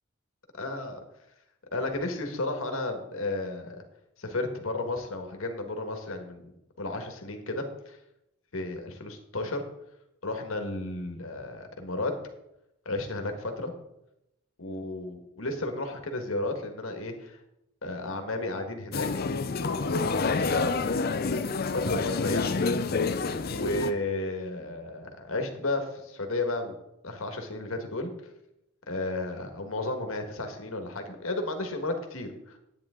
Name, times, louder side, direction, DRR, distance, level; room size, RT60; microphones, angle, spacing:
voice 1, 0.6-1.0 1.7-3.8 4.2-6.5 6.8-8.0 8.5-9.6 10.2-12.1 12.8-13.7 14.6-17.4 17.8-19.1 19.7-22.9 23.4-26.8 27.0-28.1 28.9-32.6, left 2 dB, 85° left, 5 dB, 1.6 m, -33 dB
sound 1, 18.9-23.9, left 4 dB, 45° left, 0.5 m, -28 dB
10.5 x 8.8 x 3.7 m, 0.86 s
head